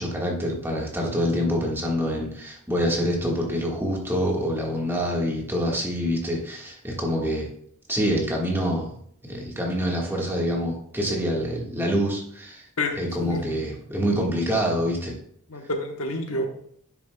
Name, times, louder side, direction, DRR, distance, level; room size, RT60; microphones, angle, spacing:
voice 1, 0.0-7.5 7.9-8.9 9.3-12.6 13.0-15.2, equal, 10° right, -2 dB, 1.5 m, -26 dB
voice 2, 12.8-13.5 15.5-16.5, left 1 dB, 65° left, 4 dB, 1.0 m, -29 dB
9.6 x 7.0 x 2.3 m, 0.65 s
head